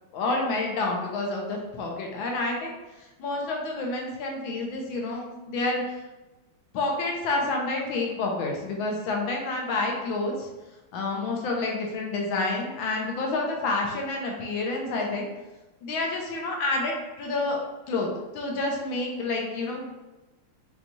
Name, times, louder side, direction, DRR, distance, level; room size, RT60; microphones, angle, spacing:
voice 1, 0.1-2.8 3.2-5.8 6.7-10.5 10.9-15.3 15.8-17.6 17.9-18.1 18.3-19.8, left 2 dB, 75° left, 0 dB, 1.5 m, -29 dB
5.3 x 2.3 x 3.0 m, 1.1 s
omnidirectional pair, 2.3 m